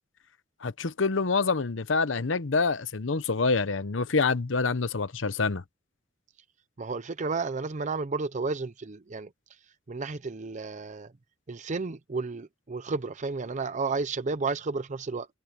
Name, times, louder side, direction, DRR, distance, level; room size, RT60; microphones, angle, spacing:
voice 1, 0.6-5.6, left 4 dB, 85° left, 0.9 m, -26 dB
voice 2, 6.8-9.3 9.9-11.1 11.5-15.3, right 4 dB, 40° right, 0.6 m, -32 dB
head